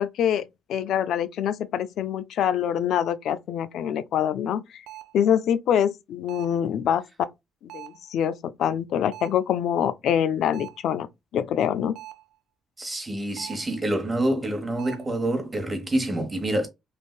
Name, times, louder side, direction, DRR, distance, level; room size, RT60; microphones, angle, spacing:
voice 1, 0.0-4.8 5.1-7.0 7.6-11.1 11.3-12.0, left 9 dB, 75° left, 0.3 m, -25 dB
sound 1, 4.9-5.2 6.3-6.7 7.7-8.1 9.1-9.5 10.5-10.9 12.0-12.4 13.4-13.8 14.8-15.2, right 14 dB, 80° right, 0.3 m, -43 dB
voice 2, 12.8-16.7, right 1 dB, 20° right, 1.2 m, -27 dB
3.3 x 2.6 x 2.3 m
cardioid pair, 90°, 0 cm